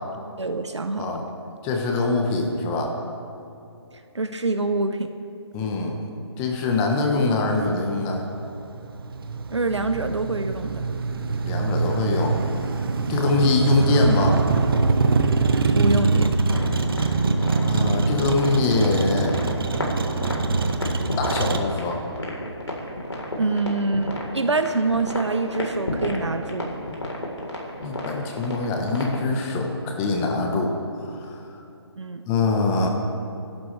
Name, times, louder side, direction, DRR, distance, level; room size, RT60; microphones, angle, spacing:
voice 1, 0.4-1.2 4.1-5.1 9.5-10.8 15.7-16.3 23.4-26.7 32.0-32.2, right 3 dB, 90° right, 8 dB, 0.9 m, -25 dB
voice 2, 1.6-2.9 5.5-6.0 6.4-8.2 11.4-12.4 13.1-14.4 17.6-19.4 21.2-22.0 27.8-30.8 31.1-31.4 32.3-32.9, left 3 dB, 15° left, 1 dB, 1.2 m, -23 dB
Motor vehicle (road), 7.5-21.6, right 3 dB, 55° right, 1.1 m, -23 dB
sound 1, 16.5-29.3, left 1 dB, 85° left, 3.9 m, -32 dB
27.5 x 12.0 x 3.4 m, 2.7 s
figure-of-eight pair, 155°, 14 cm